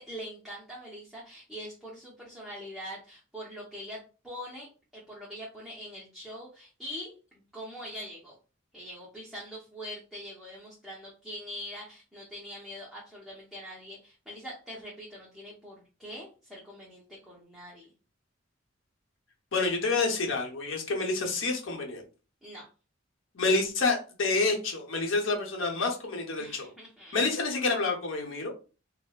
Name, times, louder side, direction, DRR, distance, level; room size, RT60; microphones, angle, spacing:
voice 1, 0.0-8.3 8.7-17.9 22.4-22.7 26.4-27.2, equal, ahead, -6 dB, 0.7 m, -43 dB
voice 2, 19.5-22.0 23.3-26.7 27.1-28.5, left 3 dB, 85° left, 2 dB, 0.8 m, -28 dB
4.3 x 2.0 x 2.3 m, 0.35 s
head